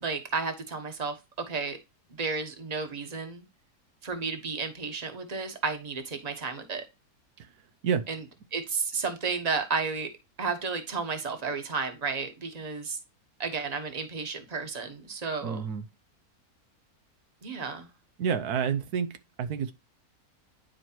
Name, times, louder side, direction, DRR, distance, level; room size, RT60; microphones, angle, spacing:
voice 1, 0.0-1.8 2.1-3.4 4.0-6.8 8.1-8.2 8.5-10.1 10.4-13.0 13.4-15.7 17.4-17.9, right 4 dB, 30° right, 1.2 m, -32 dB
voice 2, 15.4-15.8 18.2-19.1 19.4-19.7, right 7 dB, 85° right, 1.3 m, -28 dB
10.5 x 4.5 x 2.9 m
omnidirectional pair, 1.6 m